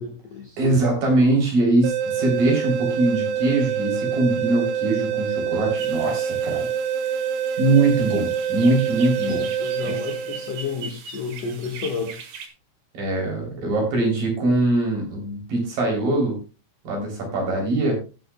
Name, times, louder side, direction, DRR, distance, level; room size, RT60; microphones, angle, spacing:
voice 1, 0.0-0.6 9.3-12.2, left 5 dB, 80° left, 1 dB, 1.4 m, -31 dB
voice 2, 0.6-6.7 7.6-9.5 9.9-10.0 12.9-16.4 16.8-18.0, right 2 dB, 45° right, 0 dB, 4.6 m, -22 dB
sound 1, 1.8-10.8, right 7 dB, 85° right, 3.2 m, -26 dB
sound 2, 5.8-12.5, right 6 dB, 65° right, 2.2 m, -41 dB
18.0 x 7.9 x 2.2 m, 0.32 s
omnidirectional pair, 5.6 m